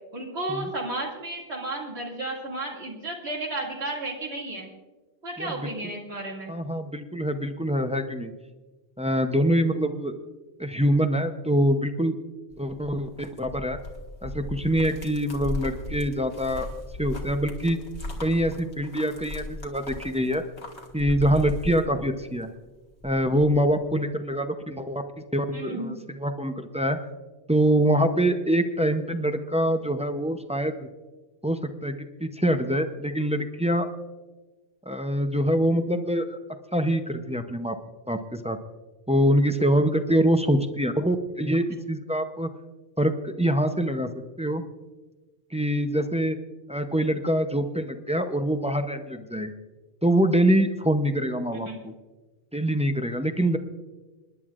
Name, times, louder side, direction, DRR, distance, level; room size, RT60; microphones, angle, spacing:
voice 1, 0.1-4.7 5.2-6.6 25.5-26.0 51.5-51.8, right 2 dB, 75° right, -3 dB, 2.6 m, -33 dB
voice 2, 5.4-5.7 6.5-8.3 9.0-10.1 10.6-12.2 12.6-13.8 14.2-16.7 17.0-17.8 18.2-20.4 20.9-22.5 23.0-25.0 25.3-27.0 27.5-30.7 31.4-33.9 34.9-36.4 36.7-37.8 38.1-38.6 39.1-42.5 43.0-44.1 44.4-44.6 45.5-46.4 46.7-49.5 50.0-51.9 52.5-53.6, equal, 10° right, 7 dB, 0.5 m, -24 dB
sound 1, 12.5-22.4 22.8-23.7, left 1 dB, 80° left, 2.0 m, -37 dB
28.5 x 10.5 x 2.5 m, 1.2 s
omnidirectional pair, 1.1 m